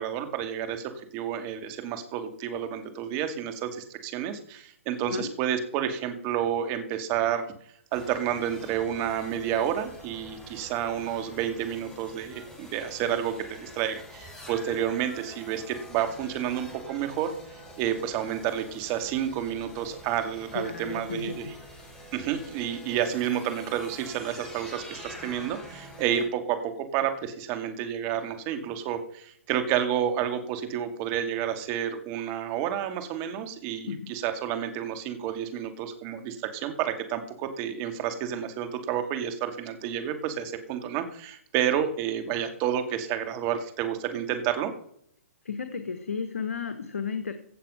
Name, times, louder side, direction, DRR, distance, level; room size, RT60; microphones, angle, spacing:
voice 1, 0.0-7.5 7.9-17.3 17.8-21.5 22.1-44.7, right 9 dB, 35° right, 7 dB, 2.5 m, -30 dB
sound 1, 7.9-26.2, equal, 10° left, 4.3 m, -46 dB
voice 2, 20.5-21.5 33.9-34.0 45.4-47.3, left 5 dB, 80° left, 9 dB, 1.4 m, -33 dB
16.0 x 7.4 x 5.7 m, 0.66 s
figure-of-eight pair, 120°, 7 cm